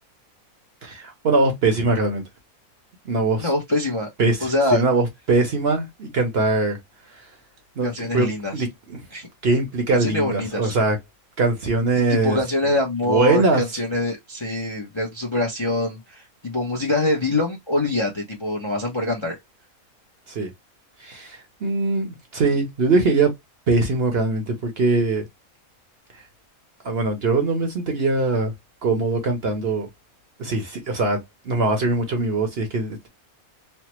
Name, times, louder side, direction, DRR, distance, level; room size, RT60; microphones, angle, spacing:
voice 1, 0.8-2.2 3.0-3.5 4.2-6.8 7.8-8.3 8.5-9.0 9.4-11.0 11.4-12.4 13.1-13.6 20.3-20.5 21.0-23.3 23.7-25.2 26.8-28.5 28.8-29.9 30.4-31.2 31.4-33.1, right 3 dB, 50° right, 0.8 m, -22 dB
voice 2, 3.4-4.1 4.4-4.8 7.8-8.6 9.1-9.3 9.9-10.8 12.1-19.4, left 2 dB, 30° left, 0.5 m, -24 dB
3.2 x 2.1 x 2.9 m
omnidirectional pair, 1.5 m